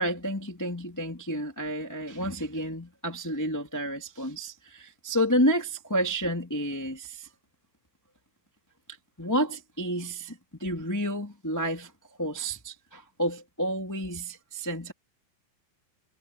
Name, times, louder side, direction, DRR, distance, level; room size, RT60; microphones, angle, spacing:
voice 1, 0.0-7.3 9.2-11.9 12.2-14.9, equal, 10° left, 1.2 m, -30 dB
omnidirectional pair, 5.3 m